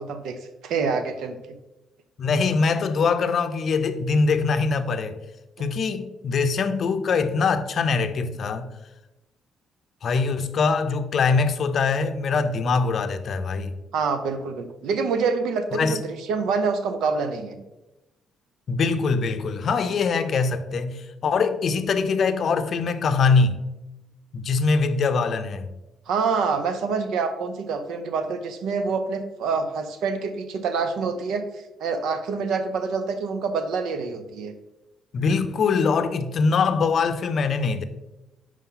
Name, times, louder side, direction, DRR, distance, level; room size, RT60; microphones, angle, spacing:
voice 1, 0.0-1.6 13.9-17.6 26.1-34.5, right 5 dB, 85° right, 0.6 m, -26 dB
voice 2, 2.2-5.2 5.6-8.7 10.0-13.8 15.7-16.0 18.7-23.6 24.3-25.7 35.1-37.8, left 4 dB, 55° left, 0.5 m, -23 dB
5.5 x 4.8 x 3.9 m
cardioid pair, 90°, 0 cm